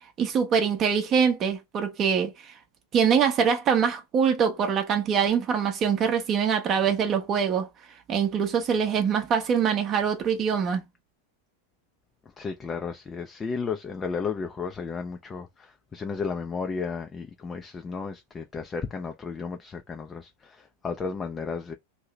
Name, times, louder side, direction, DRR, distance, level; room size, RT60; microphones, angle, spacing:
voice 1, 0.2-2.5 2.9-7.7 8.1-10.8, right 7 dB, 30° right, 0.7 m, -24 dB
voice 2, 12.4-21.7, left 5 dB, 20° left, 0.4 m, -33 dB
2.7 x 2.7 x 3.1 m
figure-of-eight pair, 90°, 0 cm